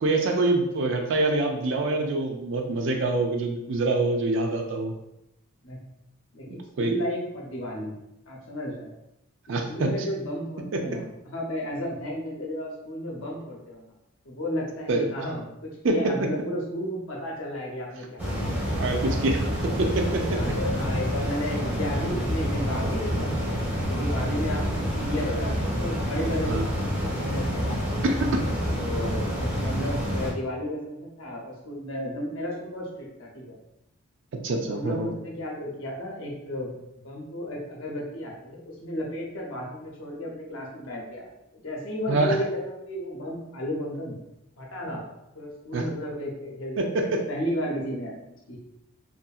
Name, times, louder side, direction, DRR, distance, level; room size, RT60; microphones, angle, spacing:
voice 1, 0.0-4.9 6.5-6.9 9.5-9.9 10.7-10.8 14.9-15.1 15.8-16.1 18.7-19.4 19.8-20.4 26.5-26.7 28.0-28.4 34.4-35.1 42.1-42.4 45.7-45.8 46.8-47.2, right 2 dB, 60° right, 2 dB, 0.4 m, -25 dB
voice 2, 6.3-8.0 8.3-8.9 9.7-13.9 14.2-18.7 20.3-27.8 28.4-33.6 34.7-44.2 44.6-45.0 45.3-48.1 48.5-48.6, equal, 70° left, -2 dB, 0.7 m, -33 dB
sound 1, 18.2-30.3, equal, 10° right, 0.6 m, -28 dB
2.6 x 2.5 x 2.3 m, 0.85 s
head